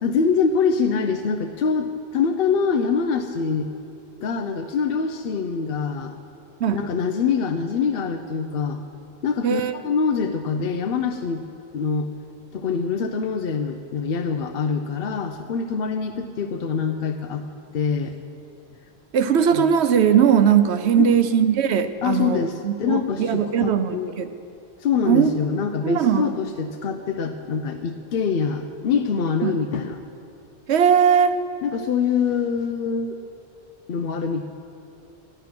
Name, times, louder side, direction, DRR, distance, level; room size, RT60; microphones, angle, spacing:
voice 1, 0.0-3.7 4.2-6.1 6.7-8.8 9.2-11.4 11.7-12.1 12.5-17.5 17.7-18.2 19.4-19.7 21.0-21.2 22.0-24.1 24.8-30.0 31.6-33.2 33.9-34.4, left 6 dB, 65° left, 6 dB, 0.8 m, -24 dB
voice 2, 9.4-9.8 19.1-24.3 25.0-25.3 25.8-26.2 29.4-29.5 30.7-31.4, right 8 dB, 75° right, 10 dB, 1.0 m, -19 dB
13.0 x 11.0 x 5.9 m, 2.5 s
omnidirectional pair, 1.1 m